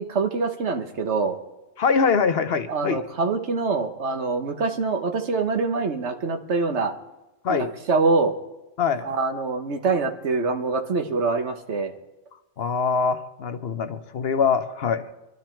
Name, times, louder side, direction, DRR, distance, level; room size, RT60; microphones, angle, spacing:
voice 1, 0.0-1.4 2.7-6.9 7.5-8.4 9.0-11.9, right 4 dB, 80° right, 6 dB, 1.4 m, -25 dB
voice 2, 1.8-3.0 7.4-7.7 8.8-9.1 12.6-15.0, left 5 dB, 60° left, 9 dB, 1.1 m, -23 dB
25.0 x 12.0 x 4.5 m, 1.0 s
omnidirectional pair, 1.1 m